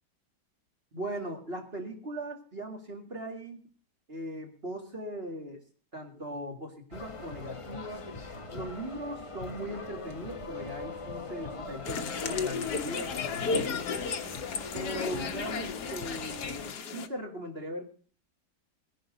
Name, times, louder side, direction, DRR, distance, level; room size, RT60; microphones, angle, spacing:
voice 1, 0.9-3.6 4.1-5.6 5.9-8.0 8.5-14.1 14.7-17.8, right 1 dB, 35° right, 1 dB, 2.2 m, -39 dB
sound 1, 6.9-16.7, left 3 dB, 30° left, 0.6 m, -41 dB
sound 2, 11.8-17.1, left 5 dB, 65° left, 1.6 m, -33 dB
19.5 x 11.0 x 3.9 m, 0.42 s
omnidirectional pair, 1.9 m